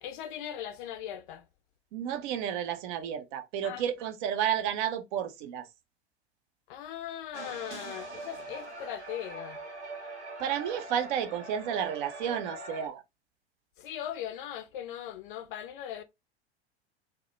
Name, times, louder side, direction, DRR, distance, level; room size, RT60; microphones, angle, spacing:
voice 1, 0.0-1.4 3.6-3.8 6.7-9.6 13.8-16.0, left 10 dB, 50° left, 0.4 m, -39 dB
voice 2, 1.9-5.7 10.4-13.0, right 9 dB, 50° right, 0.5 m, -31 dB
sound 1, 7.3-12.9, right 2 dB, 90° right, 0.7 m, -42 dB
2.1 x 2.0 x 2.9 m
figure-of-eight pair, 90°, 33 cm